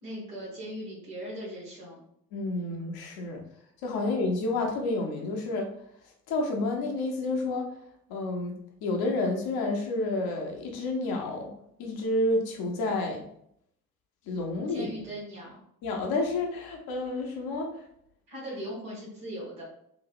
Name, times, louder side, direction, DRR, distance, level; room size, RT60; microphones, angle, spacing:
voice 1, 0.0-2.0 14.7-15.6 18.3-19.6, equal, 80° right, -5 dB, 1.3 m, -39 dB
voice 2, 2.3-3.4 3.8-5.7 6.3-7.7 8.1-8.5 8.8-11.5 11.8-13.2 14.3-14.9 15.8-17.8, left 2 dB, 55° left, 1 dB, 0.9 m, -30 dB
3.0 x 2.7 x 2.5 m, 0.71 s
figure-of-eight pair, 45°, 44 cm